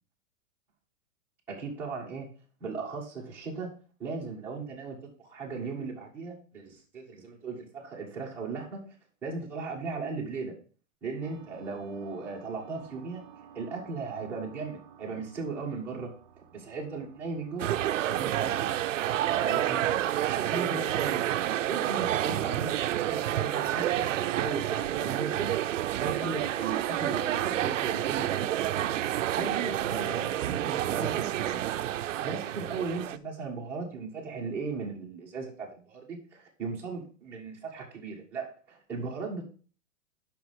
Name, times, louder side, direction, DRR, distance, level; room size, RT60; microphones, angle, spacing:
voice 1, 1.5-2.3 2.6-3.7 4.0-8.8 9.2-10.5 11.0-13.2 13.5-16.1 16.5-20.0 20.3-25.5 26.0-28.7 29.3-31.6 32.2-39.4, right 4 dB, 5° right, -6 dB, 1.5 m, -37 dB
sound 1, 11.2-28.3, right 10 dB, 40° right, 0.8 m, -53 dB
sound 2, 17.6-33.2, right 12 dB, 80° right, 0.6 m, -29 dB
5.9 x 5.8 x 6.1 m, 0.41 s
hypercardioid pair, 175°, 38 cm